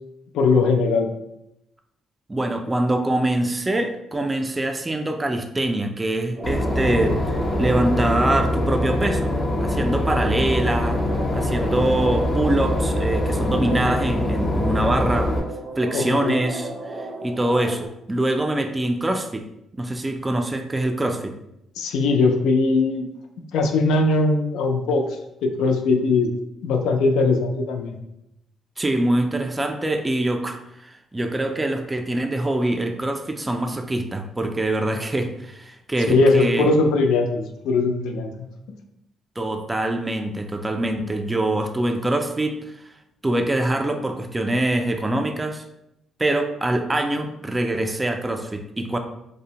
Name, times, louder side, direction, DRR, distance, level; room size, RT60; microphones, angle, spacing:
voice 1, 0.3-1.1 15.9-16.4 21.8-23.1 23.5-25.1 25.4-26.3 26.6-28.0 36.1-38.3, left 3 dB, 90° left, 4 dB, 0.3 m, -20 dB
voice 2, 2.3-9.3 9.6-11.0 11.3-15.3 15.8-19.5 19.8-21.3 28.8-36.7 39.4-42.6 43.2-45.6 46.2-49.0, right 1 dB, 20° right, 5 dB, 0.3 m, -24 dB
Boat Water vehicle / Engine, 6.4-15.4, left 1 dB, 40° left, 0.5 m, -23 dB
sound 1, 6.4-17.9, right 2 dB, 70° right, 0.6 m, -35 dB
2.6 x 2.0 x 2.8 m, 0.83 s
cardioid pair, 90°, 0 cm